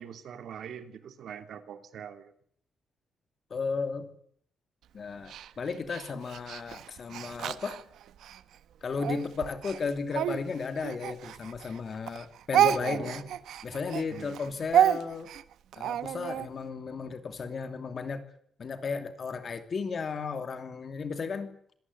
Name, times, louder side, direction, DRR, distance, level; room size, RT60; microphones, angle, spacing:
voice 1, 0.0-2.3 12.8-13.3 14.1-14.6, right 8 dB, 60° right, 9 dB, 2.8 m, -43 dB
voice 2, 3.5-4.1 4.9-7.8 8.8-13.3 13.6-15.3 15.8-18.2 18.6-21.5, left 5 dB, 35° left, 9 dB, 2.7 m, -34 dB
Speech, 5.3-8.4 9.0-11.8 12.1-16.5, right 10 dB, 80° right, 1.3 m, -29 dB
26.0 x 17.5 x 9.6 m, 0.64 s
wide cardioid pair, 180°, 0 cm